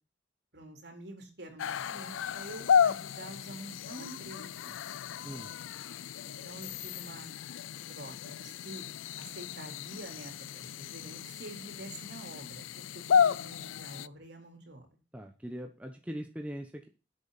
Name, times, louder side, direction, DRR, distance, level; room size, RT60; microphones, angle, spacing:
voice 1, 0.5-4.7 6.2-7.3 7.9-8.9 9.2-14.9, right 1 dB, 60° right, 3 dB, 4.2 m, -47 dB
sound 1, 1.6-14.1, left 7 dB, 90° left, 0.4 m, -33 dB
voice 2, 15.1-16.9, equal, 5° right, 4 dB, 1.0 m, -41 dB
11.0 x 8.7 x 4.2 m, 0.33 s
head